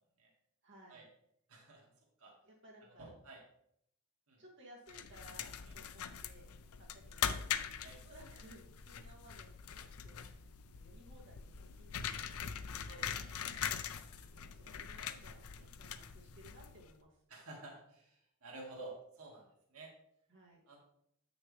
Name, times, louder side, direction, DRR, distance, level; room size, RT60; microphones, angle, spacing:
voice 1, 0.6-1.0 2.4-3.1 4.4-6.5 6.7-7.4 7.9-12.8 13.1-13.2 14.1-17.2 20.3-20.6, right 1 dB, 55° right, -3 dB, 2.1 m, -60 dB
voice 2, 1.5-1.9 2.2-2.3 3.0-3.4 4.3-4.4 5.6-5.8 7.8-8.0 12.9-15.1 15.6-15.7 17.3-19.9 20.7-20.8, right 2 dB, 85° right, -1 dB, 1.9 m, -53 dB
sound 1, 4.9-16.9, left 8 dB, 85° left, 0.5 m, -42 dB
8.0 x 6.3 x 3.2 m, 0.71 s
head